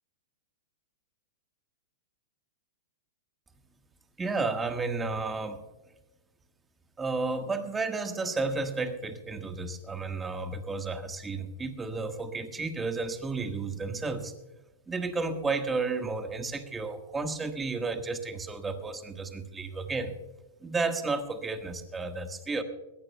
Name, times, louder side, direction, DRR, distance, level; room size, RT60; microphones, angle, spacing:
voice 1, 4.2-5.6 7.0-14.3 14.9-20.1 20.6-22.6, right 3 dB, 15° right, 7 dB, 1.4 m, -32 dB
21.5 x 16.5 x 2.2 m, 1.1 s
hypercardioid pair, 135°, 0 cm